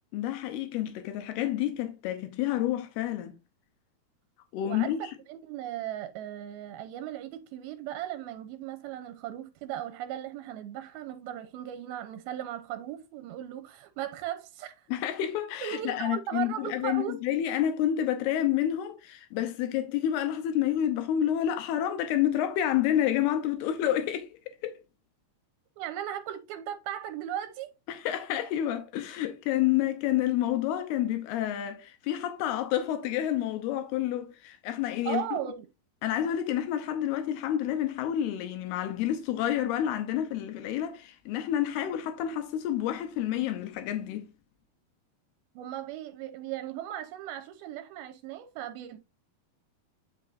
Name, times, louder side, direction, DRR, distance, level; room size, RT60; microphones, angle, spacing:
voice 1, 0.1-3.3 4.5-5.0 14.9-24.3 24.6-24.8 27.9-35.4 36.0-44.3, left 11 dB, 85° left, 2.8 m, -29 dB
voice 2, 4.6-4.9 5.3-14.9 15.6-17.2 25.8-27.7 35.1-35.7 45.6-49.0, right 11 dB, 85° right, 2.6 m, -37 dB
9.7 x 5.7 x 2.6 m
omnidirectional pair, 4.5 m